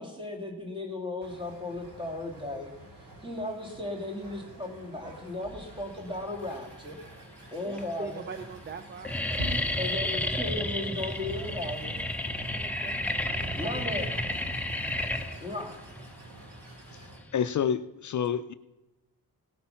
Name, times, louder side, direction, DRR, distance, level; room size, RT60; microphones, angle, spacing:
voice 1, 0.0-2.7 3.0-7.0 7.5-8.2 9.8-12.0 13.5-14.1 15.4-15.8, left 2 dB, 15° right, 1 dB, 2.4 m, -36 dB
sound 1, 1.2-17.2, right 1 dB, 65° right, 4.3 m, -47 dB
sound 2, 6.5-7.0 7.7-7.8 8.1-8.4 8.7-17.6, left 1 dB, 5° left, 0.7 m, -32 dB
voice 2, 7.6-9.7 12.5-13.9, right 6 dB, 30° right, 10 dB, 0.5 m, -43 dB
sound 3, 11.2-16.8, right 2 dB, 80° right, 1.4 m, -47 dB
voice 3, 16.9-18.5, left 8 dB, 55° left, 12 dB, 0.5 m, -29 dB
17.0 x 8.6 x 5.7 m, 1.0 s
wide cardioid pair, 160°, 36 cm